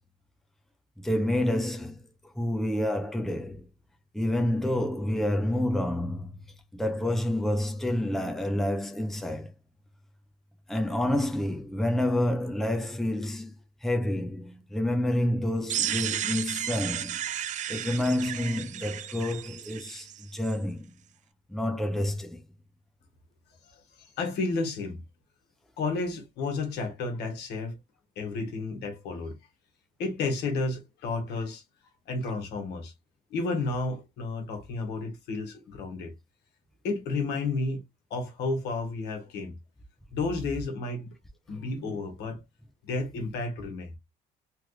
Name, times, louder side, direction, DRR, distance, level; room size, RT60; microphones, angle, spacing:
voice 1, 1.0-2.0 2.4-3.7 4.1-6.3 6.7-9.5 10.7-13.5 13.8-17.2 17.7-20.1 20.3-20.9 21.5-22.4 41.7-41.9, left 1 dB, ahead, 0.7 m, -28 dB
sound 1, 15.7-20.5, right 11 dB, 45° right, 0.4 m, -33 dB
voice 2, 24.2-25.0 25.8-27.8 28.2-29.4 30.0-31.6 32.1-32.9 33.3-36.1 36.8-37.8 38.1-39.6 40.1-41.1 41.5-42.4 42.8-43.9, left 3 dB, 75° left, 1.4 m, -32 dB
3.3 x 2.4 x 3.2 m
cardioid pair, 110°, 17 cm